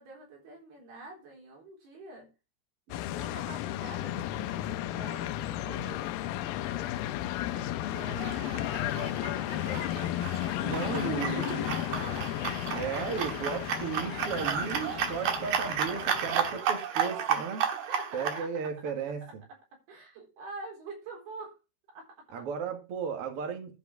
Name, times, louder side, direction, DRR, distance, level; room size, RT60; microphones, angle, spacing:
voice 1, 0.0-2.3 3.1-6.9 7.5-10.1 10.4-12.3 17.5-17.6 17.9-18.5 19.9-21.6 21.9-22.3, right 3 dB, 85° right, 6.1 m, -46 dB
sound 1, 2.9-16.6, left 13 dB, 80° left, 2.3 m, -34 dB
sound 2, 7.9-18.4, right 7 dB, 70° right, 2.8 m, -33 dB
voice 2, 10.6-11.7 12.7-17.6 18.1-19.4 22.3-23.8, right 6 dB, 45° right, 2.2 m, -35 dB
11.0 x 5.2 x 5.9 m
omnidirectional pair, 4.4 m